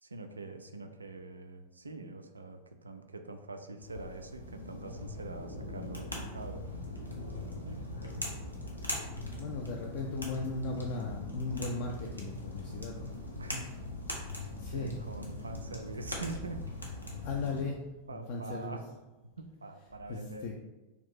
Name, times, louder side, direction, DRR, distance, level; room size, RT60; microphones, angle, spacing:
voice 1, 0.0-7.0 7.6-8.2 13.4-13.7 14.3-16.7 18.1-18.9 19.4-20.6, right 2 dB, 75° right, 6 dB, 0.3 m, -44 dB
sound 1, 3.8-17.6, left 1 dB, 90° left, 0.6 m, -41 dB
voice 2, 9.4-13.1 14.6-15.0 17.1-17.8 18.1-18.8 20.1-20.6, left 3 dB, 45° left, 0 dB, 0.3 m, -37 dB
2.6 x 2.4 x 3.6 m, 1.1 s
figure-of-eight pair, 90°, 0 cm